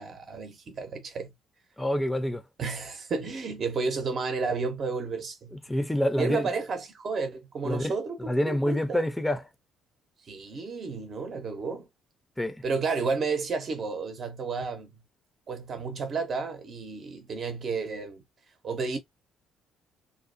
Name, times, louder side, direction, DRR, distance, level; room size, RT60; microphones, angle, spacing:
voice 1, 0.0-1.3 2.6-5.6 6.2-9.0 10.2-11.9 12.6-14.9 15.5-18.2 18.6-19.0, right 4 dB, 50° right, 0.7 m, -32 dB
voice 2, 1.8-2.4 5.7-6.5 7.6-7.9 8.3-9.4 12.4-12.6, left 1 dB, 10° left, 0.5 m, -27 dB
2.6 x 2.1 x 2.5 m
hypercardioid pair, 55°, 0 cm